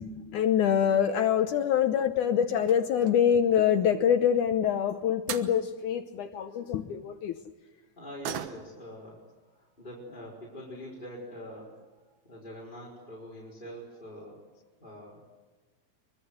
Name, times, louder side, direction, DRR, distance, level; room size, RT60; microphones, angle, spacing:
voice 1, 0.0-7.4, left 9 dB, 80° left, 8 dB, 1.8 m, -25 dB
sound 1, 1.6-2.0 2.5-3.4 4.9-5.0 5.3-5.6 8.2-8.9 9.3-9.4 9.8-9.9 10.7-10.8 11.1-11.2 11.7-12.0 12.2-12.3 12.6-12.7, right 10 dB, 80° right, 3.4 m, -40 dB
voice 2, 8.0-9.2 9.5-11.7 12.2-14.4 14.8-15.2, equal, 10° left, -3 dB, 4.1 m, -44 dB
25.5 x 24.0 x 7.9 m, 1.3 s
omnidirectional pair, 4.7 m